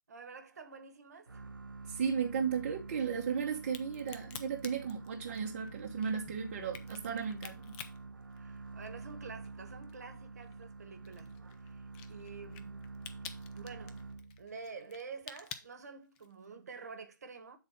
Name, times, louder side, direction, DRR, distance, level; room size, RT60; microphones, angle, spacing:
voice 1, 0.1-1.5 7.4-7.6 8.3-13.0 13.5-14.1 14.4-17.6, right 5 dB, 50° right, 1.1 m, -49 dB
sound 1, 1.3-14.7, right 3 dB, 80° right, 0.5 m, -48 dB
voice 2, 1.9-7.6, right 6 dB, 35° right, 0.8 m, -35 dB
Crack, 3.6-9.1 9.4-16.5, left 9 dB, 15° left, 0.4 m, -50 dB
7.6 x 4.1 x 4.9 m
figure-of-eight pair, 140°, 11 cm